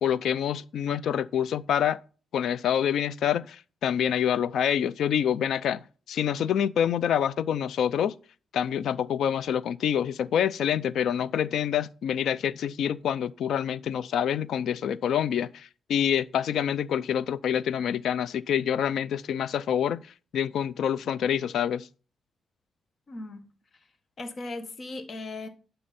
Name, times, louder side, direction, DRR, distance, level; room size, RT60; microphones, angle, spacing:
voice 1, 0.0-2.0 2.3-5.8 6.1-8.1 8.5-20.0 20.3-21.9, left 9 dB, 75° left, 0.5 m, -26 dB
voice 2, 23.1-23.5 24.2-25.5, left 2 dB, 40° left, 1.4 m, -37 dB
11.0 x 5.7 x 4.2 m
cardioid pair, 140°, 0 cm